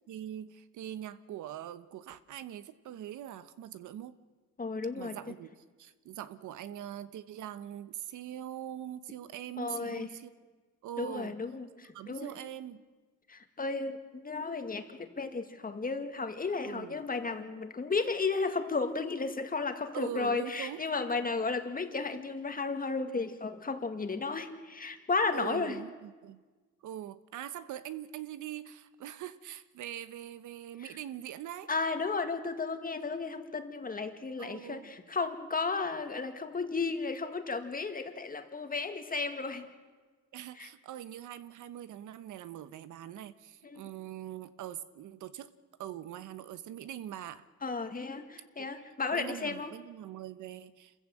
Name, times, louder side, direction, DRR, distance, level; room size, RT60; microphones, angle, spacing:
voice 1, 0.1-4.1 4.9-10.3 10.8-11.3 11.9-12.8 16.6-17.0 19.9-20.9 25.3-26.4 26.8-31.7 34.4-34.9 40.3-45.5 45.8-47.5 48.6-48.7 49.1-50.9, right 11 dB, 80° right, 13 dB, 1.1 m, -42 dB
voice 2, 4.6-5.2 9.6-10.1 11.0-12.3 13.3-25.8 30.8-30.9 31.7-39.7 40.6-40.7 43.6-43.8 47.6-49.7, left 4 dB, 30° left, 7 dB, 2.1 m, -34 dB
27.0 x 15.0 x 7.8 m, 1.4 s
cardioid pair, 90°, 30 cm